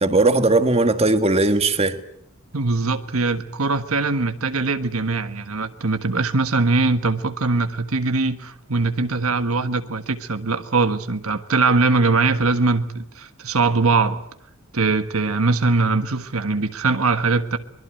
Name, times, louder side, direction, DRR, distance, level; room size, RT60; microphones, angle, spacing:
voice 1, 0.0-2.0, right 2 dB, 30° right, 1.7 m, -18 dB
voice 2, 2.5-14.2 14.7-17.6, right 3 dB, 85° right, 1.5 m, -21 dB
23.5 x 22.5 x 9.1 m
head